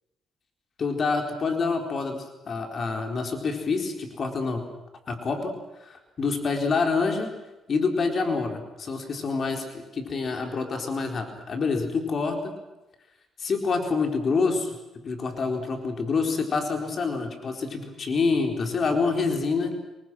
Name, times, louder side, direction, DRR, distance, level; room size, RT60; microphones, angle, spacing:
voice 1, 0.8-4.6 5.1-5.5 5.8-7.3 7.7-9.6 9.9-12.4 13.4-14.8 15.0-19.7, left 4 dB, 50° left, 4 dB, 4.2 m, -27 dB
28.5 x 23.0 x 6.3 m, 1.0 s
cardioid pair, 90°, 0 cm